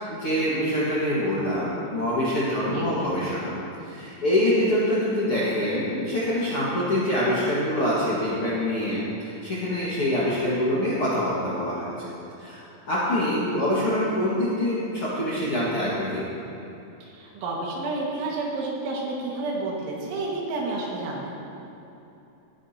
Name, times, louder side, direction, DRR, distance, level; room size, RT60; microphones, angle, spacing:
voice 1, 0.1-3.5 3.8-12.1 12.4-12.6 12.9-16.3, left 1 dB, 60° left, -9 dB, 1.4 m, -25 dB
voice 2, 2.7-3.1 17.0-21.3, right 2 dB, 85° right, -3 dB, 4.2 m, -30 dB
18.0 x 10.5 x 2.9 m, 2.9 s
omnidirectional pair, 5.3 m